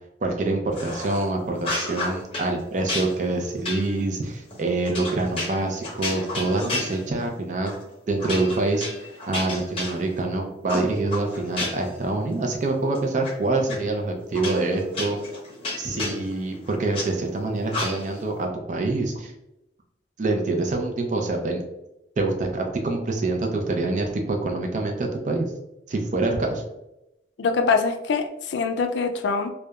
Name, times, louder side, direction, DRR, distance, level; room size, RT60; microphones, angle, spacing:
voice 1, 0.2-7.7 8.1-15.2 15.8-19.3 20.2-21.6 22.2-25.5 25.9-26.6, right 2 dB, 45° right, 3 dB, 0.4 m, -26 dB
sound 1, 0.7-1.3 1.6-2.5 2.9-7.3 7.7-7.8 8.2-10.3 10.7-12.0 12.3-13.3 13.7-13.8 14.3-17.1 17.7-18.2, left 2 dB, 30° left, 0.7 m, -32 dB
voice 2, 27.4-29.5, left 4 dB, 80° left, 7 dB, 0.3 m, -24 dB
2.8 x 2.2 x 2.3 m, 0.88 s
head